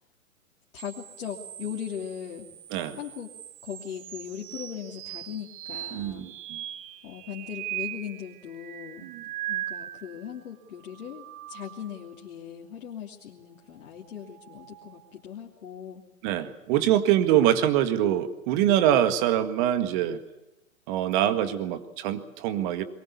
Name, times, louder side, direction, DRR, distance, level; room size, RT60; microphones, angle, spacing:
voice 1, 0.7-2.5 3.0-3.3 3.6-6.2 7.0-9.1 9.5-16.0, left 9 dB, 65° left, -2 dB, 3.1 m, -39 dB
sound 1, 0.8-10.3 10.8-12.1 13.9-15.1, right 14 dB, 20° right, 0.8 m, -40 dB
voice 2, 5.9-6.6 9.0-9.2 16.2-20.2 20.9-22.8, right 11 dB, 35° right, 10 dB, 1.9 m, -24 dB
22.5 x 20.0 x 8.4 m, 0.93 s
hypercardioid pair, 135°, 43 cm